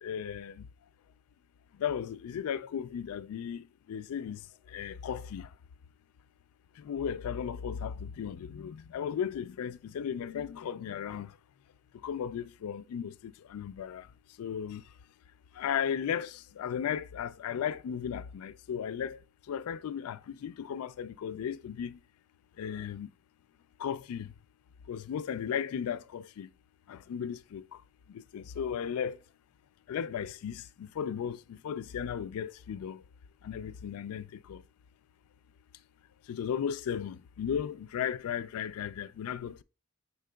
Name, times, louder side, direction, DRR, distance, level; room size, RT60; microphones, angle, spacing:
voice 1, 0.0-0.6 1.8-4.4 4.7-5.5 6.8-11.3 12.0-14.1 14.4-14.8 15.6-19.2 19.5-22.0 22.6-23.1 23.8-24.3 24.9-26.5 26.9-27.8 28.1-29.2 29.9-33.0 33.4-34.6 36.3-39.6, left 8 dB, 80° left, 0.3 m, -35 dB
5.5 x 3.8 x 2.2 m
head